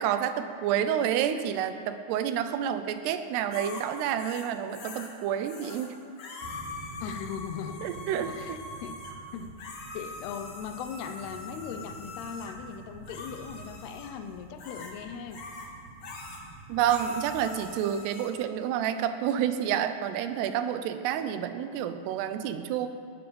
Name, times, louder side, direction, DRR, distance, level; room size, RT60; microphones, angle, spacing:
voice 1, 0.0-6.0 7.8-8.6 16.7-22.9, right 9 dB, 90° right, 9 dB, 2.9 m, -29 dB
sound 1, 3.5-5.1 5.4-5.9 6.2-12.6 13.1-14.1 14.6-14.9 15.3-15.7 16.0-16.4 16.9-18.3, left 3 dB, 50° left, 2.5 m, -43 dB
sound 2, 6.4-17.7, right 3 dB, 65° right, 2.4 m, -49 dB
voice 2, 7.0-8.0 8.3-9.0 9.3-9.6 9.9-15.4, left 7 dB, 80° left, 8 dB, 2.8 m, -39 dB
19.0 x 12.0 x 5.2 m, 2.3 s
omnidirectional pair, 4.6 m